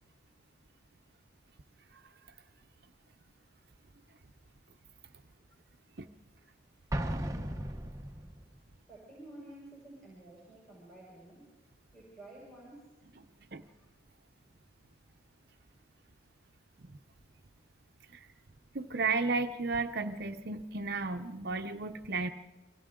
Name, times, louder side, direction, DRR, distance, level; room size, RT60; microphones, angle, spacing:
voice 1, 6.8-8.1 8.9-11.5 11.9-14.0 15.0-15.1 18.3-18.5, right 1 dB, ahead, -4 dB, 6.3 m, -53 dB
Explosion, 6.9-8.6, right 1 dB, 15° right, 0.9 m, -36 dB
voice 2, 18.7-22.3, right 4 dB, 55° right, 6 dB, 0.8 m, -33 dB
29.5 x 24.5 x 3.8 m, 1.1 s
head